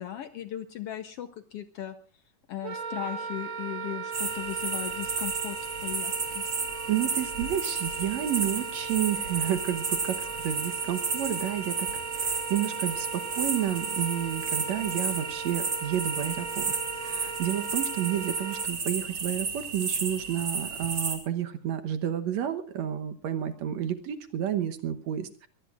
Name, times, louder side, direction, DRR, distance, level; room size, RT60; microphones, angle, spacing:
voice 1, 0.0-1.9 2.5-6.4, left 12 dB, 75° left, 10 dB, 1.4 m, -37 dB
Wind instrument woodwind instrument, 2.6-18.7, right 5 dB, 80° right, 3.5 m, -38 dB
sound 1, 4.1-21.2, right 4 dB, 40° right, 3.5 m, -32 dB
voice 2, 6.9-25.5, right 10 dB, 65° right, 9 dB, 2.1 m, -31 dB
24.5 x 18.5 x 2.5 m, 0.35 s
omnidirectional pair, 3.7 m